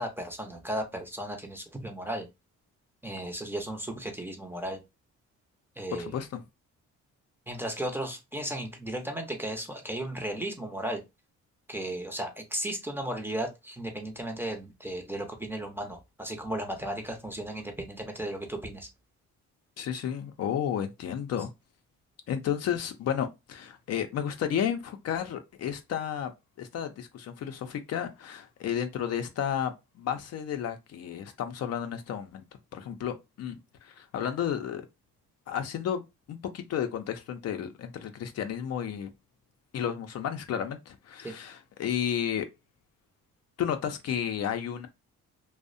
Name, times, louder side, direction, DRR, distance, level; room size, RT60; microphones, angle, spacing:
voice 1, 0.0-2.3 3.0-4.8 5.8-6.2 7.5-11.0 11.7-18.9 41.2-41.3, right 1 dB, 5° right, 0.5 m, -35 dB
voice 2, 5.9-6.4 19.8-21.5 22.3-26.3 26.6-32.4 32.7-34.8 35.5-36.0 36.3-39.1 39.7-42.5 43.6-44.9, left 9 dB, 55° left, 0.5 m, -32 dB
2.5 x 2.0 x 2.4 m
cardioid pair, 90°, 30 cm